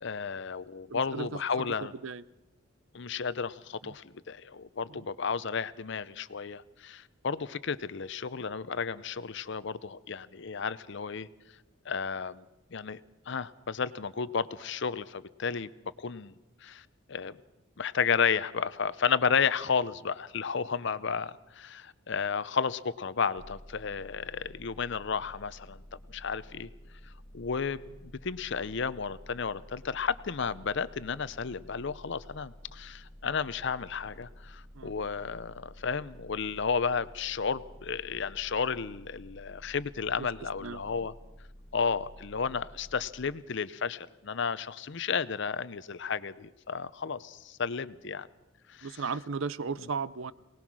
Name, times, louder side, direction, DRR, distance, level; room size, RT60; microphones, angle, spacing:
voice 1, 0.0-1.9 2.9-11.3 11.9-12.4 12.7-15.7 16.0-16.3 16.6-17.4 17.8-25.8 26.1-26.7 27.3-41.1 41.7-48.3 48.7-48.9, left 6 dB, 55° left, 16 dB, 0.6 m, -32 dB
voice 2, 0.9-2.2 3.8-3.9 4.9-5.0 34.7-34.9 40.2-40.3 40.6-41.0 48.8-50.3, right 5 dB, 65° right, 17 dB, 0.6 m, -36 dB
sound 1, 23.4-43.1, equal, 10° left, 1.6 m, -51 dB
23.5 x 19.0 x 6.2 m, 1.0 s
head